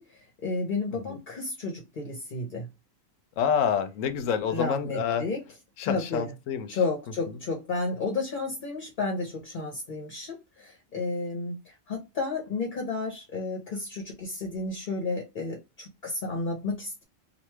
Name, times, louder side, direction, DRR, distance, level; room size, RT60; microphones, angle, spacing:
voice 1, 0.0-2.7 4.5-5.4 5.8-6.3 6.7-17.0, left 3 dB, 45° left, 0.8 m, -32 dB
voice 2, 3.4-5.3 5.8-6.8, left 7 dB, 75° left, 1.0 m, -27 dB
3.0 x 2.4 x 3.2 m
omnidirectional pair, 1.4 m